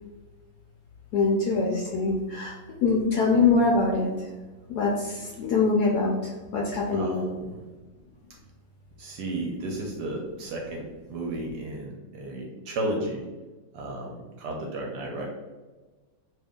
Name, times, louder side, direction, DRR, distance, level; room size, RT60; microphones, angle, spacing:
voice 1, 1.1-4.3 4.7-7.2, left 3 dB, 75° left, -3 dB, 0.9 m, -24 dB
voice 2, 6.9-7.6 9.0-13.3 13.7-15.3, right 1 dB, 70° right, -1 dB, 1.0 m, -33 dB
2.9 x 2.6 x 3.5 m, 1.2 s
omnidirectional pair, 2.1 m